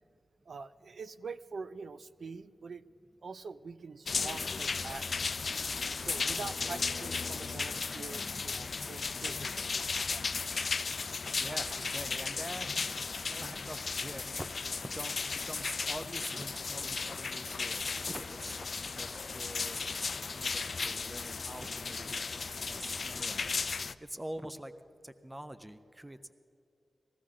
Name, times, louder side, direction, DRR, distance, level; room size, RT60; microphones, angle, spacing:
voice 1, 0.5-2.8 3.2-5.4 6.0-10.2, right 4 dB, 65° right, 14 dB, 0.4 m, -45 dB
sound 1, 4.1-23.9, left 4 dB, 55° left, 0.4 m, -35 dB
sound 2, 4.8-9.7, left 2 dB, 30° left, 1.0 m, -55 dB
voice 2, 11.4-12.7 13.3-14.5 14.9-18.7 19.0-20.0 20.3-22.2 22.6-23.5 24.0-24.7 25.0-26.3, right 1 dB, 10° right, 11 dB, 0.5 m, -45 dB
19.5 x 15.0 x 3.8 m, 2.6 s
wide cardioid pair, 105°, 0 cm